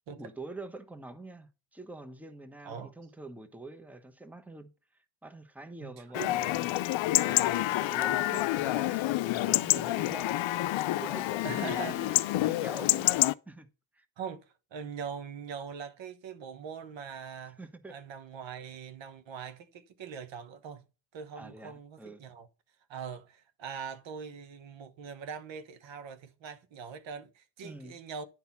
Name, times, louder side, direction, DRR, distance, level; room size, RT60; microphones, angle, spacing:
voice 1, 0.2-4.7 5.2-10.4 10.9-13.7 13.9-14.0 17.4-18.0 21.3-22.2 27.6-28.0, right 2 dB, 5° right, 1.0 m, -46 dB
voice 2, 5.8-6.4 11.4-12.2 14.2-14.4 14.7-17.6 17.9-20.9 21.1-22.5 22.9-28.2, right 6 dB, 75° right, 1.1 m, -42 dB
Chatter / Livestock farm animals working animals / Chirp tweet, 6.1-13.3, left 16 dB, 80° left, 0.6 m, -28 dB
10.5 x 4.1 x 5.7 m
cardioid pair, 80°, 45 cm